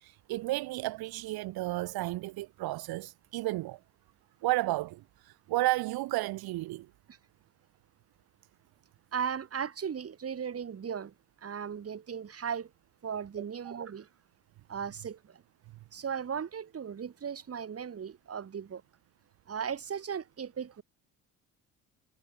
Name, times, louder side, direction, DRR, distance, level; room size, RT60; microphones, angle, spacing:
voice 1, 0.0-3.8 4.4-5.0 5.5-6.9, right 18 dB, 70° right, 1.3 m, -32 dB
voice 2, 9.1-11.1 11.4-12.7 13.0-14.1 14.7-15.4 15.9-18.8 19.5-20.8, right 7 dB, 40° right, 2.0 m, -37 dB
supercardioid pair, 65°, 38 cm